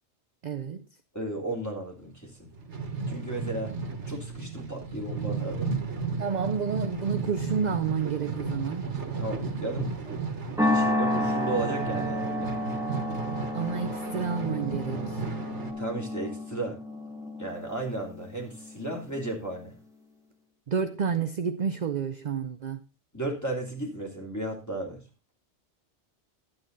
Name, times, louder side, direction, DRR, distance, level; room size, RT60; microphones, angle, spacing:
voice 1, 0.4-0.9 6.2-8.9 13.5-15.2 20.7-22.8, right 6 dB, 45° right, 0.7 m, -30 dB
voice 2, 1.1-2.5 3.1-3.7 4.1-5.7 9.2-10.2 10.4-12.5 15.8-16.8 17.4-19.7 23.1-25.0, right 2 dB, 15° left, 3.0 m, -34 dB
sound 1, 2.4-15.7, right 4 dB, 80° right, 1.8 m, -34 dB
sound 2, 10.6-19.1, left 1 dB, 5° right, 1.9 m, -31 dB
11.5 x 8.8 x 3.9 m
omnidirectional pair, 1.2 m